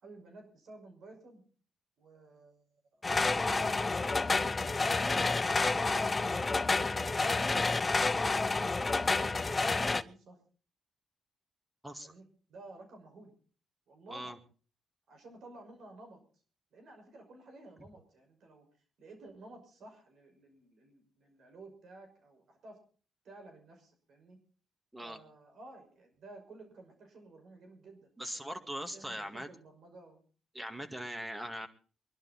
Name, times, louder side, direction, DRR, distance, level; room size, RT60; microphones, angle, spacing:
voice 1, 0.0-1.4 2.0-2.6 2.9-3.0 3.3-5.3 5.6-8.4 8.9-10.4 12.0-12.2 12.5-13.3 13.9-14.3 15.1-16.2 16.7-18.7 19.0-22.8 23.2-24.4 25.0-28.1 28.4-30.2, right 2 dB, 65° right, 4 dB, 5.8 m, -53 dB
sound 1, 3.0-10.0, left 3 dB, 25° left, 0.7 m, -29 dB
voice 2, 11.8-12.1 14.1-14.4 24.9-25.2 28.2-29.5 30.5-31.7, equal, 10° right, 8 dB, 2.1 m, -40 dB
23.5 x 11.5 x 4.3 m, 0.40 s
cardioid pair, 90°, 0 cm